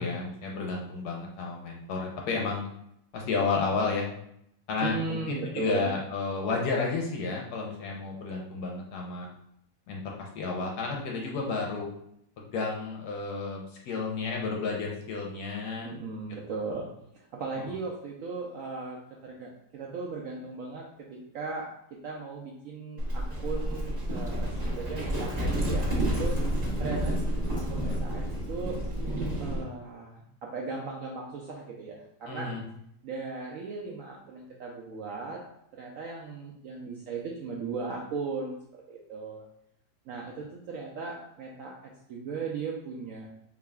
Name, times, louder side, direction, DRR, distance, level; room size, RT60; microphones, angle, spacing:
voice 1, 0.0-2.6 3.1-4.1 4.7-9.3 9.9-11.9 12.4-15.9 32.3-32.6, left 4 dB, 75° left, -1 dB, 1.1 m, -31 dB
voice 2, 4.8-5.9 15.8-16.9 17.1-21.7 22.0-26.4 26.8-28.8 29.4-32.5 33.0-35.4 35.7-39.4 40.1-43.3, right 4 dB, 70° right, -2 dB, 0.8 m, -37 dB
Livestock farm animals working animals, 23.0-29.6, equal, 25° right, 1.1 m, -30 dB
4.7 x 2.9 x 2.3 m, 0.74 s
omnidirectional pair, 1.8 m